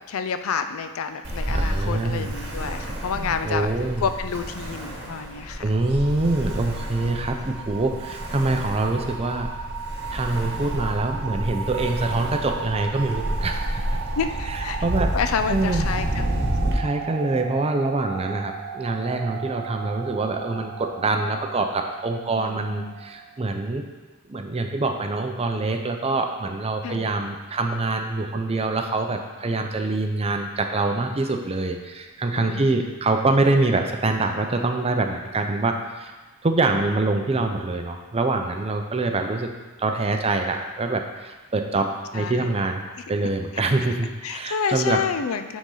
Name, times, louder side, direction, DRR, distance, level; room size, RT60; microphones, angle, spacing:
voice 1, 0.0-3.7 4.0-5.6 14.2-14.8 15.1-16.4 22.4-23.0 26.8-27.1 32.3-32.9 42.1-42.5 44.2-45.6, left 6 dB, 75° left, 9 dB, 0.4 m, -29 dB
Ocean, 1.2-16.7, right 1 dB, 55° right, 1.3 m, -30 dB
voice 2, 1.5-2.3 3.2-4.1 5.6-9.5 10.1-13.8 14.5-15.1 15.5-15.9 16.7-23.9 24.3-36.1 36.4-39.5 39.8-42.8 43.1-45.0, right 2 dB, 30° right, 5 dB, 0.5 m, -25 dB
sound 1, 5.6-23.5, right 7 dB, 80° right, 0.4 m, -36 dB
9.2 x 4.1 x 3.8 m, 1.3 s
head